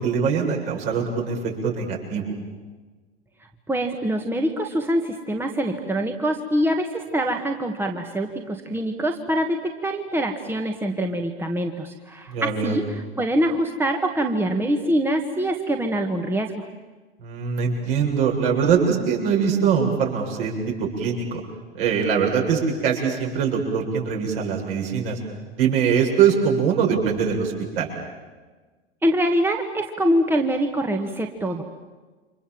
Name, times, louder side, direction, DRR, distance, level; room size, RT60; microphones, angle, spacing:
voice 1, 0.0-2.3 12.3-12.8 17.2-21.4 21.7-25.2 25.6-27.9, right 6 dB, 60° right, 0 dB, 7.6 m, -22 dB
voice 2, 3.7-16.6 29.0-31.6, right 1 dB, 5° right, 4 dB, 1.9 m, -24 dB
29.5 x 26.0 x 7.6 m, 1.3 s
figure-of-eight pair, 90°, 33 cm